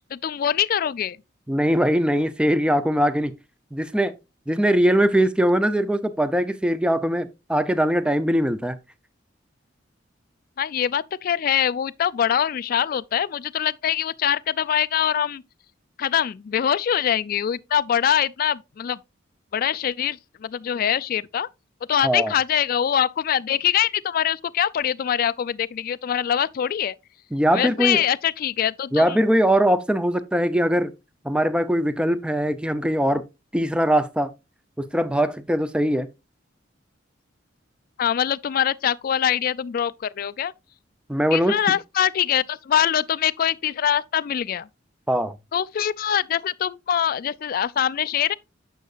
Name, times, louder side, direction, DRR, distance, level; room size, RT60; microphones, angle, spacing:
voice 1, 0.1-1.2 10.6-15.4 16.0-19.0 19.5-21.5 21.9-26.9 27.5-29.2 38.0-40.5 41.3-44.7 45.5-48.3, left 9 dB, 50° left, 0.3 m, -23 dB
voice 2, 1.5-3.3 3.7-4.1 4.5-8.8 22.0-22.3 27.3-28.0 28.9-30.9 31.2-33.2 33.5-34.3 34.9-36.1 41.1-41.5 45.1-45.3, equal, 5° right, 0.5 m, -21 dB
9.3 x 6.4 x 2.4 m
head